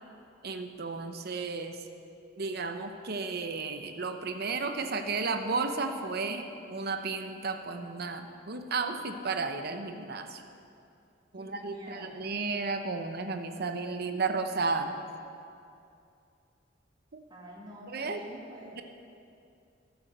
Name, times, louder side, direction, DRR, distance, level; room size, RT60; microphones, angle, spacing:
voice 1, 0.4-1.8 2.4-10.4 11.3-15.0 17.1-17.2 17.9-18.2 18.8-18.9, right 4 dB, 55° right, 6 dB, 0.9 m, -33 dB
voice 2, 11.3-12.2 17.3-18.7, equal, 25° right, -3 dB, 2.2 m, -47 dB
14.5 x 7.0 x 6.8 m, 2.5 s
head